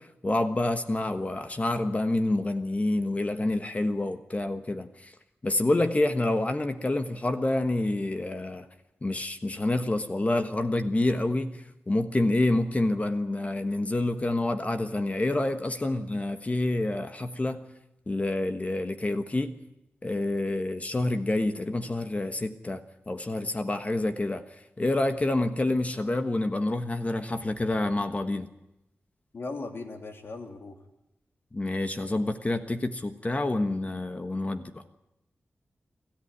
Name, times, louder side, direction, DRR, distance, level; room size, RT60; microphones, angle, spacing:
voice 1, 0.0-5.1 5.4-8.6 9.0-17.7 18.1-19.6 20.0-22.8 23.1-24.4 24.8-28.5 31.5-34.8, left 2 dB, 35° left, 8 dB, 1.4 m, -28 dB
voice 2, 29.3-30.8, left 3 dB, 65° left, 4 dB, 3.2 m, -38 dB
25.5 x 14.0 x 9.8 m, 0.90 s
cardioid pair, 60°, 4 cm